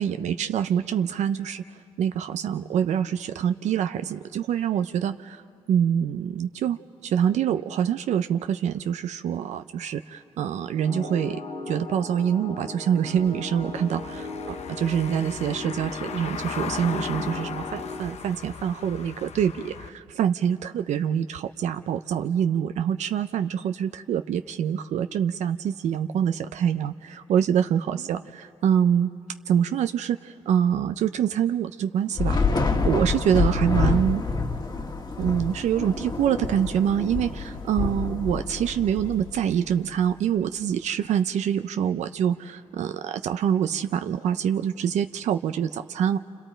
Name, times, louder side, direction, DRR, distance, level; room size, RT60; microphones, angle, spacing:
voice 1, 0.0-1.6 2.0-5.4 5.7-11.4 11.7-28.2 28.6-29.1 29.5-32.5 32.8-34.3 35.2-46.2, right 9 dB, 85° right, 9 dB, 0.5 m, -25 dB
sound 1, 10.8-18.0, left 3 dB, 85° left, 4.0 m, -37 dB
Car passing by / Engine, 13.1-19.9, left 7 dB, 70° left, 0.8 m, -37 dB
Thunder / Rain, 32.2-39.7, left 4 dB, 40° left, 1.6 m, -27 dB
29.0 x 28.0 x 4.5 m, 2.7 s
cardioid pair, 75°, 12 cm